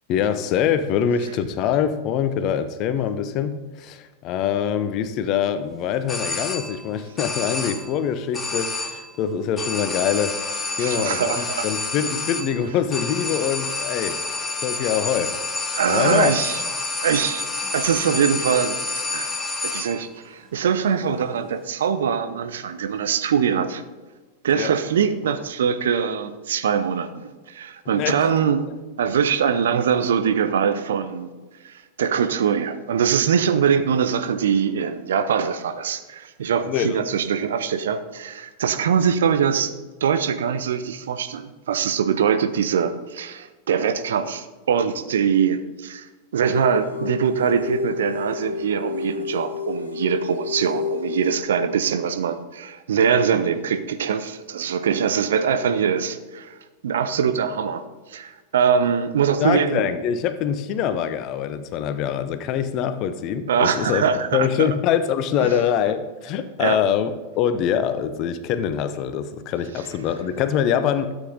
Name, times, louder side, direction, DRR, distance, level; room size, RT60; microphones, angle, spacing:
voice 1, 0.1-14.2 14.6-15.3 15.9-16.4 24.5-24.7 28.0-28.3 36.7-37.0 59.4-64.0 64.3-71.1, left 8 dB, 40° left, 12 dB, 0.8 m, -24 dB
sound 1, 6.1-6.9 7.2-8.0 8.3-9.2 9.6-20.1, left 3 dB, 15° left, 1.3 m, -29 dB
voice 2, 10.8-11.7 15.7-16.6 17.0-17.5 17.7-18.8 19.1-19.3 19.6-23.8 24.4-28.6 29.0-31.3 31.6-39.7 40.0-46.1 46.3-56.5 56.8-57.8 58.1-59.9 63.5-64.7 65.4-65.5 66.6-66.8, right 7 dB, 60° right, 11 dB, 0.7 m, -23 dB
sound 2, 46.4-51.4, left 6 dB, 80° left, 1.8 m, -30 dB
13.0 x 8.1 x 4.0 m, 1.3 s
figure-of-eight pair, 90°, 0 cm